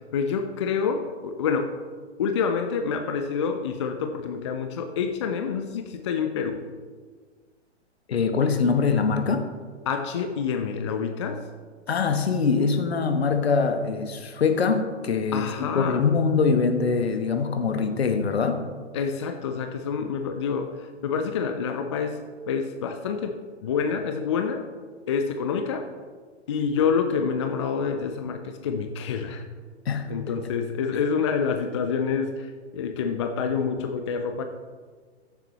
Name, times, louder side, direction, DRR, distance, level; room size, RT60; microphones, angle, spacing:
voice 1, 0.0-1.7 2.2-6.6 9.9-11.4 15.3-16.1 18.9-22.2 22.5-24.7 25.1-25.9 26.5-29.4 30.1-34.4, left 6 dB, 25° left, 6 dB, 0.4 m, -27 dB
voice 2, 8.1-9.5 11.9-18.6 29.8-30.3, left 5 dB, 60° left, 6 dB, 1.2 m, -23 dB
14.5 x 7.2 x 3.1 m, 1.5 s
figure-of-eight pair, 115°, 35 cm